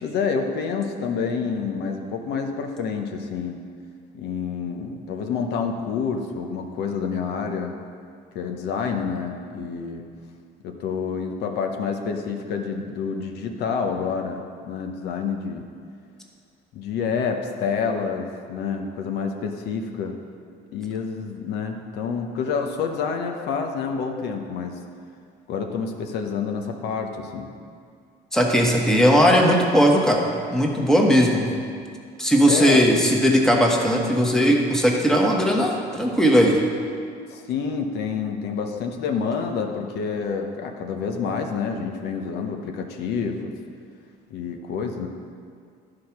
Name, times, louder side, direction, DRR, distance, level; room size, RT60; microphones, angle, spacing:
voice 1, 0.0-3.6 4.1-7.8 8.3-10.0 10.6-15.6 16.7-20.2 20.7-24.8 25.5-27.5 32.5-32.8 37.3-43.5 44.3-45.1, left 5 dB, 75° left, 4 dB, 0.9 m, -28 dB
voice 2, 28.3-31.5 32.2-36.6, equal, 5° left, -1 dB, 1.3 m, -18 dB
11.5 x 4.9 x 5.9 m, 2.2 s
cardioid pair, 110°, 17 cm